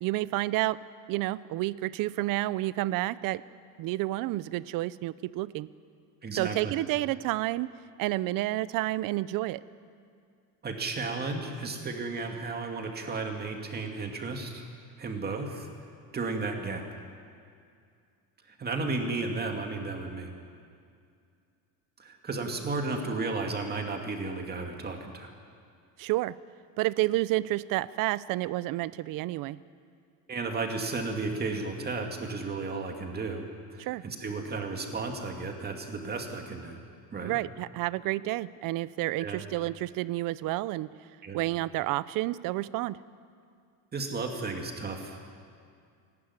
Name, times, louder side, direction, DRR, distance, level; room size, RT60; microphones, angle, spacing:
voice 1, 0.0-0.8 1.1-3.4 3.8-5.7 6.3-9.6 26.0-26.4 26.8-29.6 33.8-34.0 37.2-40.9 41.3-43.0, right 17 dB, 55° right, 18 dB, 0.7 m, -30 dB
voice 2, 6.2-6.7 10.6-14.6 15.0-15.7 16.1-16.8 18.5-20.3 22.0-25.3 30.3-36.8 37.1-37.3 39.2-39.4 41.2-41.4 43.9-45.2, right 3 dB, 25° right, 3 dB, 2.2 m, -34 dB
26.5 x 12.0 x 9.7 m, 2.3 s
cardioid pair, 140°, 39 cm